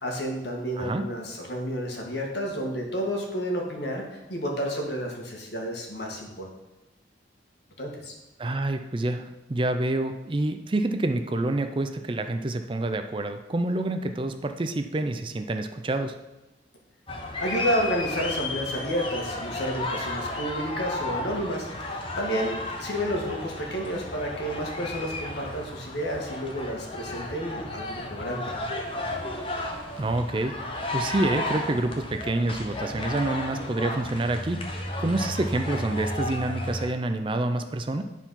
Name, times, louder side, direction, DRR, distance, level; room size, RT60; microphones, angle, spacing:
voice 1, 0.0-6.5 7.8-8.1 17.4-28.5, equal, 70° left, 0 dB, 1.7 m, -31 dB
voice 2, 0.8-1.1 8.4-16.1 30.0-30.6 30.9-34.6 35.0-38.0, right 2 dB, 30° right, 7 dB, 0.4 m, -27 dB
sound 1, 17.1-36.9, left 1 dB, 30° left, 1.0 m, -33 dB
10.0 x 4.5 x 5.7 m, 1.0 s
head